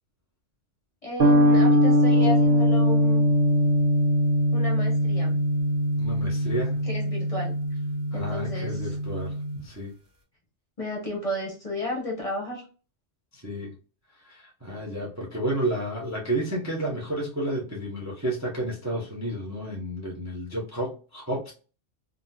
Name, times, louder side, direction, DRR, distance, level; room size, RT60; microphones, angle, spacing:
voice 1, 1.0-3.2 4.5-5.4 6.9-7.5 8.1-8.8 10.8-12.6, left 1 dB, 35° left, 0.7 m, -32 dB
sound 1, 1.2-9.6, equal, 35° right, 0.9 m, -22 dB
voice 2, 6.0-6.8 8.1-9.9 13.3-13.7 14.2-21.5, right 1 dB, 20° right, 0.5 m, -31 dB
3.7 x 2.0 x 2.7 m
omnidirectional pair, 1.3 m